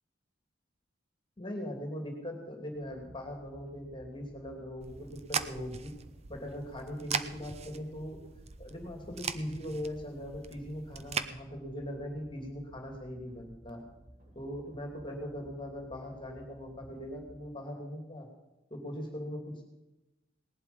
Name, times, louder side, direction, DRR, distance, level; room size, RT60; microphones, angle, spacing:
voice 1, 1.4-5.9 6.3-8.2 8.6-13.8 14.3-18.3 18.7-19.6, equal, 25° left, 2 dB, 2.7 m, -40 dB
sound 1, 2.7-17.4, equal, 60° right, 6.3 m, -56 dB
sound 2, 4.8-11.3, right 6 dB, 35° right, 0.7 m, -40 dB
19.0 x 11.5 x 5.4 m, 0.98 s
head